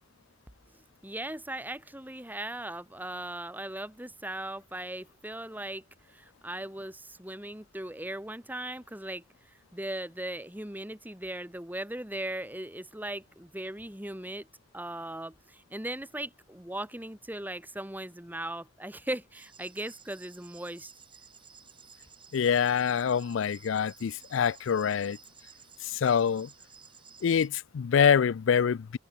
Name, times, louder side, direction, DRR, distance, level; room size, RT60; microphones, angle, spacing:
voice 1, 1.0-5.8 6.1-9.2 9.7-14.5 14.7-20.9, right 1 dB, 10° right, 3.0 m, -38 dB
sound 1, 19.3-27.5, right 7 dB, 25° right, 4.8 m, -54 dB
voice 2, 22.3-25.2 25.8-26.5 27.2-29.0, left 7 dB, 90° left, 0.4 m, -25 dB
head